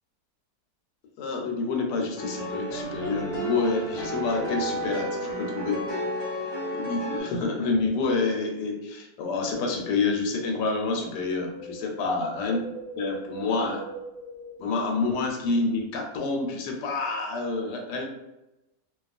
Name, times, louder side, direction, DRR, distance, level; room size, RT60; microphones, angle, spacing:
voice 1, 1.2-5.8 6.7-12.6 13.0-13.8 14.6-18.0, left 3 dB, 85° left, 2 dB, 1.2 m, -28 dB
sound 1, 2.2-7.2, right 1 dB, 20° right, 0.5 m, -32 dB
Wind, 11.1-15.5 15.7-15.8, right 2 dB, 80° right, 1.2 m, -41 dB
2.6 x 2.3 x 2.4 m, 0.97 s
omnidirectional pair, 1.8 m